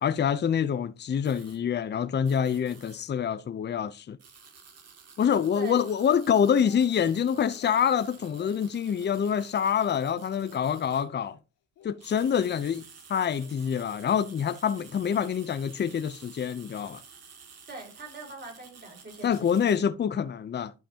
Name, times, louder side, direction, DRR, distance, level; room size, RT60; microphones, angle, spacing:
voice 1, 0.0-4.2 5.2-11.4 11.8-12.8 13.1-17.0 19.2-20.7, left 8 dB, 35° left, 0.6 m, -26 dB
sound 1, 1.2-1.6 2.2-3.0 4.2-11.1 11.8-19.8, right 6 dB, 55° right, 2.3 m, -52 dB
voice 2, 5.5-5.8 17.7-19.7, right 3 dB, 35° right, 5.4 m, -43 dB
Speech, 6.1-7.1 7.4-7.8 8.2-8.5 8.9-9.2 9.6-9.9 10.3-10.6 11.0-11.4 11.8-12.6 13.3-13.6, left 10 dB, 85° left, 2.1 m, -53 dB
11.5 x 5.8 x 2.8 m
cardioid pair, 90°, 30 cm